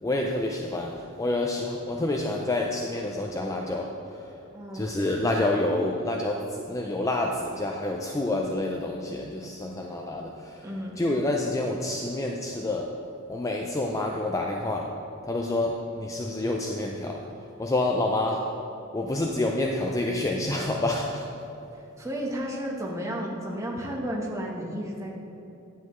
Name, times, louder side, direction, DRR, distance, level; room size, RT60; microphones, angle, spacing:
voice 1, 0.0-4.4 4.7-10.7 11.0-12.9 13.3-14.9 15.2-18.5 18.9-21.3, left 2 dB, 15° left, 0 dB, 0.4 m, -28 dB
voice 2, 4.5-5.3 10.6-11.0 21.7-25.1, equal, 15° right, -2 dB, 1.0 m, -33 dB
9.5 x 8.0 x 3.1 m, 2.9 s
head